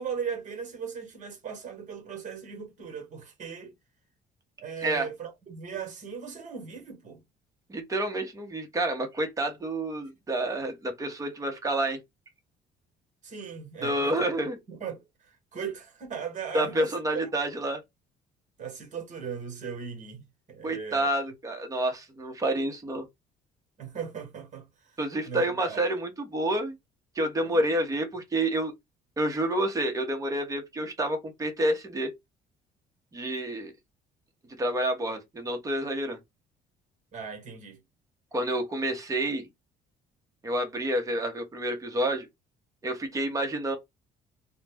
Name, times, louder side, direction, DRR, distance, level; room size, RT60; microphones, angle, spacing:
voice 1, 0.0-3.7 4.6-7.2 13.2-14.3 14.7-15.0 15.5-16.9 18.6-21.1 23.8-24.6 25.2-25.8 27.4-27.6 37.1-37.8, right 6 dB, 45° right, 1.3 m, -38 dB
voice 2, 7.7-12.0 13.8-14.6 16.5-17.8 20.6-23.1 25.0-26.8 27.1-28.7 29.2-32.1 33.1-33.7 34.6-36.2 38.3-39.5 40.4-42.3 42.8-43.8, right 1 dB, 20° right, 1.0 m, -29 dB
2.4 x 2.1 x 3.3 m
cardioid pair, 110°, 17 cm